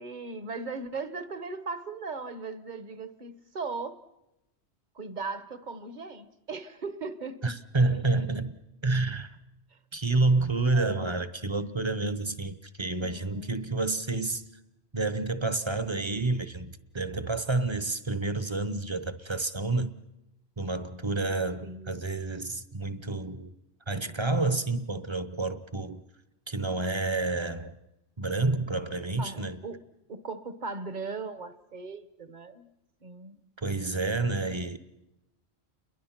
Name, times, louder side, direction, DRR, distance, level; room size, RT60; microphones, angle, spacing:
voice 1, 0.0-4.0 4.9-7.6 9.7-9.8 10.7-11.2 13.0-13.6 21.6-22.0 29.2-29.8 30.1-32.7 33.0-33.4, right 4 dB, 45° right, 1.1 m, -38 dB
voice 2, 7.4-8.6 8.8-9.4 9.9-14.4 14.9-19.9 20.6-23.5 23.9-26.0 26.5-27.7 28.2-29.6 33.6-34.8, right 3 dB, 25° right, 0.9 m, -29 dB
29.5 x 22.0 x 5.9 m
omnidirectional pair, 1.1 m